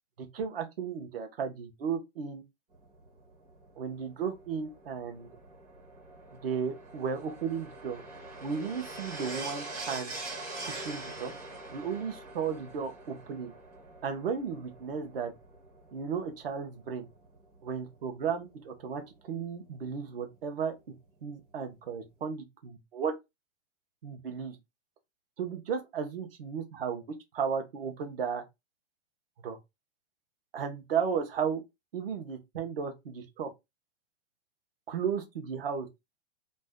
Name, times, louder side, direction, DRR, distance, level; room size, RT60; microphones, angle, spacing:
voice 1, 0.2-2.4 3.8-5.3 6.3-8.0 8.4-10.1 10.6-11.3 11.7-13.5 14.0-15.3 15.9-17.0 17.6-20.7 21.2-23.2 24.0-24.6 25.4-28.4 29.4-29.6 30.5-31.6 31.9-33.5 34.9-35.9, right 6 dB, 45° right, 0.7 m, -34 dB
sound 1, 2.7-19.1 20.2-20.3, right 2 dB, 30° right, 1.3 m, -45 dB
2.5 x 2.2 x 3.4 m
hypercardioid pair, 175°, 40 cm